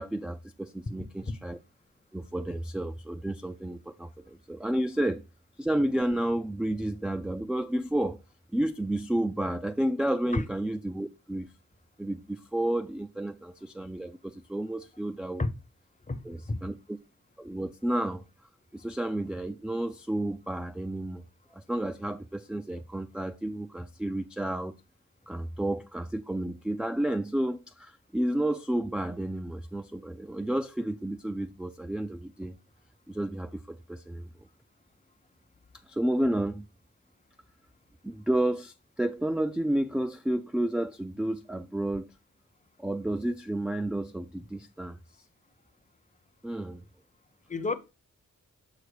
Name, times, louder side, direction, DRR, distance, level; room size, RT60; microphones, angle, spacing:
voice 1, 0.0-1.6 2.1-5.2 5.6-8.2 8.5-11.5 12.0-15.5 16.3-17.0 17.4-18.2 18.7-21.2 21.5-24.7 25.3-32.5 33.1-34.3 35.9-36.6 38.0-42.1 42.8-45.0 46.4-46.8, right 1 dB, 5° right, 0.3 m, -31 dB
voice 2, 16.1-16.6 47.5-47.7, left 2 dB, 25° left, 0.7 m, -30 dB
6.6 x 4.2 x 4.8 m
wide cardioid pair, 140°, 30 cm